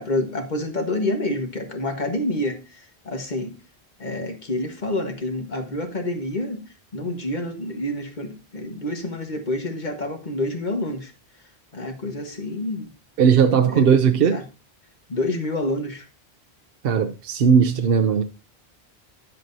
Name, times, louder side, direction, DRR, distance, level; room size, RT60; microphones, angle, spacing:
voice 1, 0.0-3.5 4.0-6.6 6.9-11.1 11.7-12.9 13.5-14.4 15.1-16.0, left 1 dB, 45° left, 1.6 m, -28 dB
voice 2, 13.2-14.4 16.8-18.2, right 7 dB, 65° right, 0.8 m, -17 dB
11.0 x 7.7 x 2.7 m
omnidirectional pair, 1.1 m